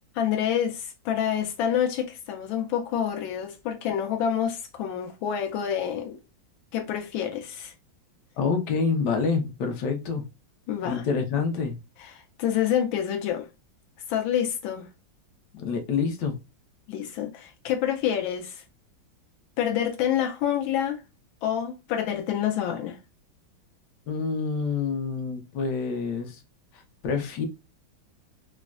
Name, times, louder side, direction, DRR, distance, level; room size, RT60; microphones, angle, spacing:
voice 1, 0.1-6.2 6.7-7.7 10.7-11.1 12.0-13.5 14.1-14.9 16.9-18.6 19.6-21.0 21.4-23.0, left 9 dB, 85° left, 1.4 m, -27 dB
voice 2, 8.4-10.2 10.8-11.8 15.5-16.4 24.1-26.4 26.7-27.5, left 5 dB, 65° left, 1.4 m, -27 dB
4.2 x 2.1 x 2.3 m
omnidirectional pair, 2.1 m